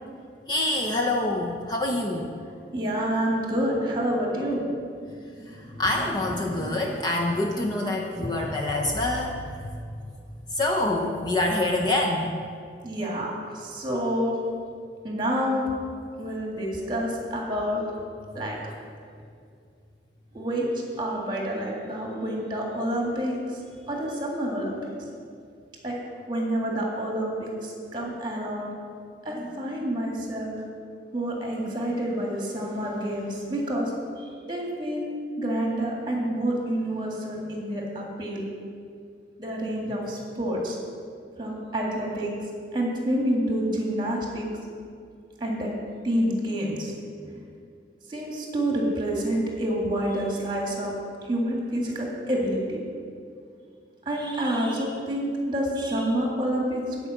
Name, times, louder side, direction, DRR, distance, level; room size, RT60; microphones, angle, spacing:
voice 1, 0.5-2.3 5.5-9.7 10.0-10.1 10.5-12.4 18.4-18.8, left 2 dB, 25° left, 0 dB, 0.6 m, -26 dB
voice 2, 2.7-4.7 5.6-5.8 6.4-6.8 12.8-14.4 15.0-15.7 16.2-17.8 18.3-18.5 20.3-20.7 21.0-23.4 23.9-24.9 25.8-25.9 26.3-28.7 29.3-30.6 31.1-33.9 34.5-35.1 35.4-38.4 39.4-40.8 41.4-42.3 42.7-44.5 45.4-45.7 46.0-46.9 47.2-47.3 48.1-50.9 51.3-52.8 54.1-57.1, right 1 dB, 25° right, -2 dB, 1.9 m, -28 dB
10.0 x 5.1 x 8.1 m, 2.3 s
head